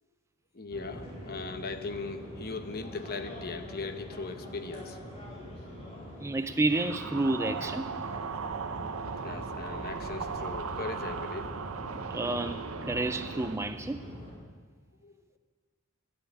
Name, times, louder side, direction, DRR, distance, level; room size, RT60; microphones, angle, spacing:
voice 1, 0.5-5.0 9.2-11.6 15.0-15.2, left 4 dB, 45° left, 8 dB, 1.0 m, -39 dB
sound 1, 0.7-14.3, equal, 30° left, 5.0 m, -44 dB
voice 2, 6.2-7.9 12.1-14.0, right 2 dB, 15° right, 10 dB, 0.4 m, -30 dB
sound 2, 6.7-13.6, right 5 dB, 70° right, 0.7 m, -37 dB
sound 3, 7.7-13.6, equal, 45° right, 3.0 m, -56 dB
12.0 x 10.0 x 8.4 m, 1.5 s
head